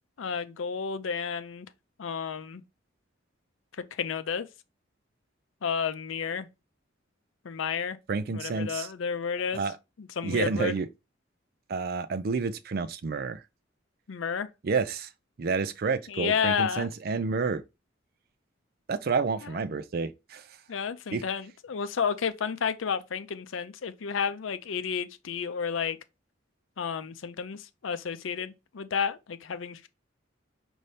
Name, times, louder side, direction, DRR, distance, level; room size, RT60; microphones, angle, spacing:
voice 1, 0.2-1.7 2.0-2.6 3.8-4.5 5.6-6.5 7.4-8.0 8.3-9.6 10.0-10.7 14.1-14.5 16.1-16.9 20.7-26.0 26.8-29.9, left 6 dB, 85° left, 0.5 m, -31 dB
voice 2, 8.1-8.9 9.5-9.8 10.2-10.9 11.7-13.4 14.6-15.1 15.4-17.6 18.9-20.5 21.1-21.2, right 4 dB, 50° right, 0.4 m, -29 dB
5.4 x 2.7 x 3.2 m
head